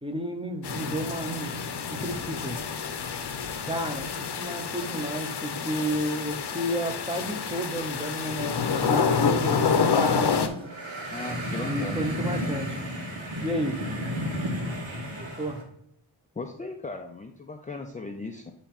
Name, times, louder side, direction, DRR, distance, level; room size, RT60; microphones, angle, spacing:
voice 1, 0.0-1.6 1.9-2.6 3.7-10.6 11.6-12.8 13.4-13.8 15.2-15.6, equal, 10° right, 4 dB, 0.8 m, -32 dB
sound 1, 0.6-10.5, left 6 dB, 55° left, 0.9 m, -28 dB
sound 2, 10.6-15.6, equal, 70° right, 1.8 m, -32 dB
voice 2, 11.1-12.1 16.4-18.5, left 3 dB, 15° left, 3 dB, 0.5 m, -37 dB
8.6 x 3.0 x 4.4 m, 0.75 s
wide cardioid pair, 95°, 48 cm